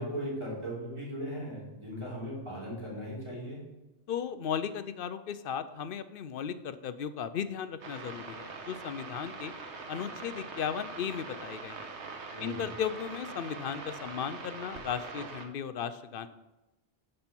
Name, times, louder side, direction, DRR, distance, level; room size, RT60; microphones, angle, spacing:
voice 1, 0.0-3.6 12.3-12.7, equal, 25° right, -5 dB, 3.4 m, -38 dB
voice 2, 4.1-9.5 9.9-11.9 12.4-16.3, left 8 dB, 60° left, 12 dB, 0.6 m, -36 dB
sound 1, 7.8-15.5, right 4 dB, 70° right, 1.3 m, -43 dB
11.5 x 5.6 x 4.4 m, 1.0 s
omnidirectional pair, 1.2 m